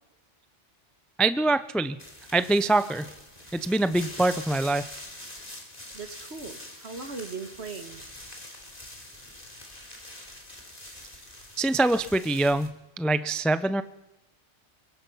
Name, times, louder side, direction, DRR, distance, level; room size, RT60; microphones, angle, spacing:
voice 1, 1.2-2.0 2.3-3.1 3.5-4.9 11.6-13.8, right 2 dB, ahead, 12 dB, 0.4 m, -24 dB
sound 1, 2.0-12.7, left 1 dB, 30° left, 3.4 m, -44 dB
voice 2, 5.9-8.1, right 4 dB, 60° right, 9 dB, 1.9 m, -39 dB
24.0 x 22.5 x 5.7 m, 0.96 s
omnidirectional pair, 1.2 m